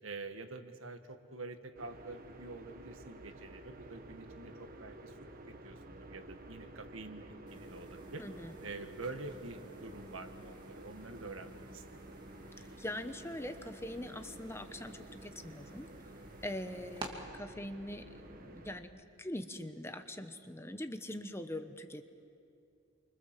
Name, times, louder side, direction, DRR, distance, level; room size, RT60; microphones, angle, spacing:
voice 1, 0.0-5.2 5.6-8.2 8.6-12.0 16.7-16.8, right 3 dB, 75° right, 8 dB, 1.6 m, -47 dB
sound 1, 1.8-18.8, right 1 dB, 45° right, 1.5 m, -52 dB
sound 2, 7.5-17.1, right 2 dB, 20° right, 2.5 m, -53 dB
voice 2, 8.2-8.5 12.6-15.9 16.4-22.0, left 1 dB, 10° left, 8 dB, 1.0 m, -43 dB
28.5 x 24.5 x 7.5 m, 2.6 s
head